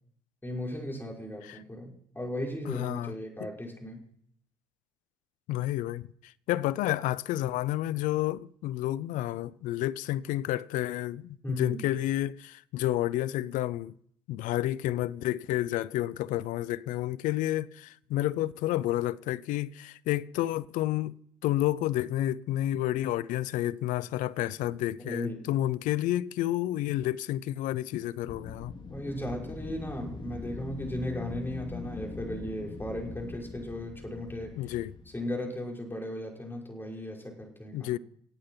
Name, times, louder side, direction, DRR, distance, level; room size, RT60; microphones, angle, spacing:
voice 1, 0.4-4.0 11.4-11.8 25.0-25.5 28.9-34.6 35.1-38.0, left 1 dB, 15° left, 5.8 m, -36 dB
voice 2, 2.7-3.1 3.4-3.5 5.5-13.9 14.3-21.2 21.4-28.7 34.6-34.9 37.7-38.0, left 14 dB, 65° left, 0.6 m, -30 dB
Wind, 28.3-35.2, left 3 dB, 35° left, 2.7 m, -42 dB
26.0 x 8.8 x 5.7 m
hypercardioid pair, 65°, 14 cm